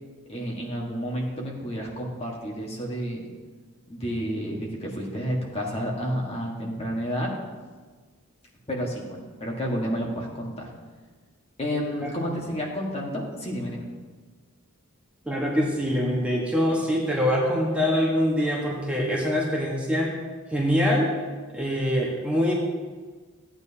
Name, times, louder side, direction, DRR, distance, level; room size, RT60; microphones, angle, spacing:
voice 1, 0.3-3.3 3.9-7.3 8.7-10.7 11.6-13.9, equal, 30° left, -2 dB, 1.6 m, -30 dB
voice 2, 15.3-20.1 20.5-21.1 21.5-22.5, equal, 5° right, -3 dB, 1.3 m, -24 dB
14.5 x 9.0 x 2.8 m, 1.4 s
head